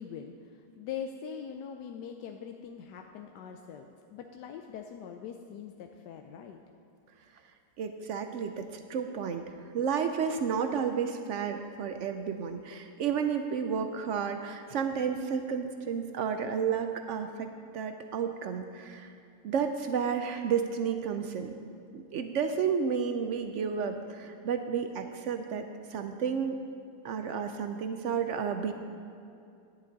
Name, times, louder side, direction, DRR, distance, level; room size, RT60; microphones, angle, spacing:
voice 1, 0.0-6.6, left 7 dB, 90° left, 4 dB, 1.2 m, -42 dB
voice 2, 7.8-19.1 19.4-21.5 21.9-26.6 27.0-28.7, right 6 dB, 70° right, 7 dB, 0.7 m, -32 dB
11.0 x 10.0 x 3.9 m, 2.5 s
omnidirectional pair, 1.8 m